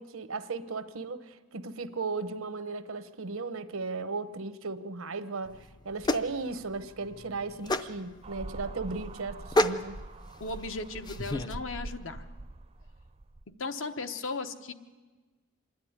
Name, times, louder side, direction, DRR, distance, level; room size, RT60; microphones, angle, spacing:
voice 1, 0.0-10.0, right 4 dB, 80° right, 11 dB, 0.9 m, -36 dB
sound 1, 5.4-11.5, left 1 dB, 20° left, 0.5 m, -32 dB
sound 2, 8.2-13.4, right 2 dB, 30° right, 0.5 m, -44 dB
voice 2, 10.4-12.2 13.6-14.7, left 3 dB, 65° left, 8 dB, 1.0 m, -36 dB
26.0 x 10.5 x 9.6 m, 1.3 s
head